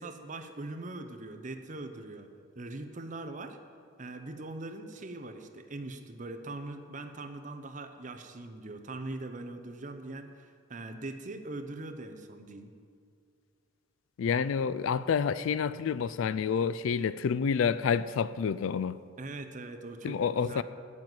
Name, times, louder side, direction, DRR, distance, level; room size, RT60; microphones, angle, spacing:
voice 1, 0.0-2.3 2.6-3.6 4.0-12.7 19.2-20.6, right 2 dB, 35° right, 0.7 m, -41 dB
voice 2, 14.2-19.0 20.0-20.6, left 6 dB, 70° left, 0.3 m, -28 dB
9.1 x 7.5 x 7.8 m
head